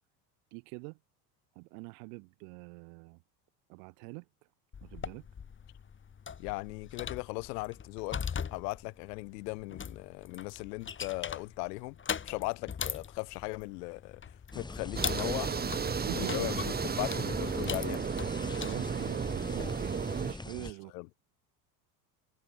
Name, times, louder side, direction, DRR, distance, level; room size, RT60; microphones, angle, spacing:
voice 1, 0.5-1.0 1.6-3.2 3.7-4.3 4.8-5.3 16.0-16.5 18.6-20.9, right 40 dB or more, 70° right, 7.5 m, -44 dB
sound 1, 4.7-19.8, left 7 dB, 25° left, 1.8 m, -41 dB
voice 2, 6.4-8.2 8.5-12.0 12.2-14.2 14.5-15.7 16.1-18.0 20.9-21.1, left 26 dB, 75° left, 3.0 m, -38 dB
sound 2, 14.5-20.7, left 2 dB, 10° left, 1.8 m, -43 dB
sound 3, 15.0-20.3, right 6 dB, 20° right, 1.2 m, -33 dB
supercardioid pair, 95°, 49 cm